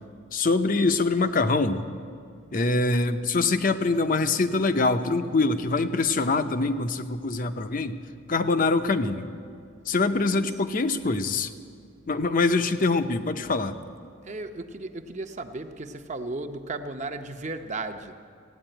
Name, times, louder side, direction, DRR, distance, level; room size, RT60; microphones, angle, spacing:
voice 1, 0.3-1.9 2.5-8.0 8.3-9.3 9.9-11.5 12.1-13.7, left 3 dB, 40° left, 10 dB, 0.6 m, -24 dB
voice 2, 14.2-18.1, right 2 dB, 35° right, 7 dB, 0.7 m, -35 dB
16.0 x 9.4 x 9.0 m, 2.4 s
head